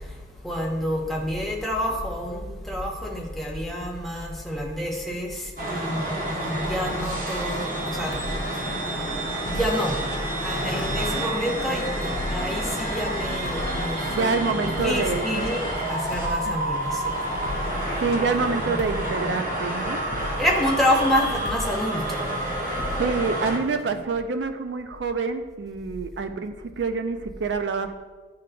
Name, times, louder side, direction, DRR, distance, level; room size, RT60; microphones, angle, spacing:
voice 1, 0.0-8.2 8.5-8.6 9.5-10.0 10.4-17.2 20.4-22.3, equal, ahead, -2 dB, 0.8 m, -28 dB
sound 1, 5.6-23.6, right 1 dB, 45° right, 1.2 m, -29 dB
sound 2, 7.6-24.1, left 1 dB, 60° left, 0.5 m, -37 dB
voice 2, 14.1-15.5 16.5-16.6 18.0-20.0 22.9-27.9, right 4 dB, 75° right, 8 dB, 0.4 m, -27 dB
11.0 x 3.8 x 2.2 m, 1.3 s
head